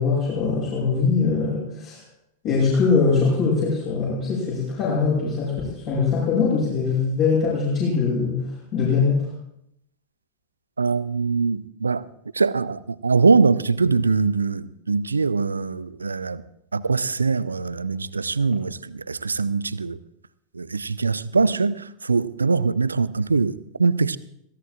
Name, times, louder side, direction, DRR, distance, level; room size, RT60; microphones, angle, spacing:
voice 1, 0.0-2.0 2.4-9.3, left 5 dB, 45° left, 7.9 m, -22 dB
voice 2, 10.8-12.1 12.3-16.4 16.7-20.0 20.5-24.2, right 4 dB, 75° right, 0.5 m, -22 dB
26.0 x 16.5 x 2.5 m
figure-of-eight pair, 90°, 0 cm